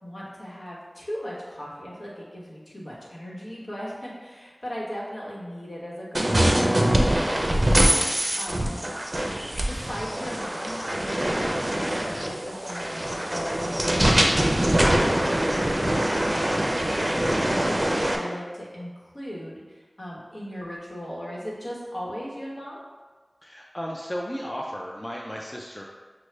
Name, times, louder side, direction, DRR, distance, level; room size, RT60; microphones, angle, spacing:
voice 1, 0.0-7.7 8.4-8.9 9.6-22.8, equal, 70° left, -5 dB, 1.1 m, -38 dB
sound 1, 6.1-18.2, right 1 dB, 40° right, 0.5 m, -23 dB
voice 2, 23.4-25.8, equal, 25° left, -2 dB, 0.4 m, -34 dB
6.2 x 2.2 x 3.2 m, 1.4 s
wide cardioid pair, 45°, 0 cm